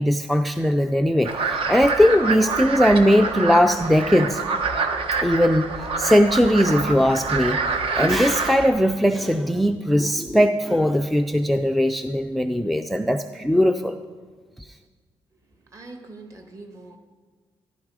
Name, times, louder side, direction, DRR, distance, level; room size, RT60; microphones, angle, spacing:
voice 1, 0.0-4.4 5.2-5.7 6.0-7.6 7.9-14.0 14.6-14.7, equal, ahead, 8 dB, 0.3 m, -19 dB
sound 1, 1.2-8.7, right 4 dB, 70° right, 1.1 m, -26 dB
voice 2, 15.4-17.0, right 2 dB, 35° right, 4 dB, 1.5 m, -43 dB
14.5 x 11.0 x 4.8 m, 1.5 s
wide cardioid pair, 155°, 10 cm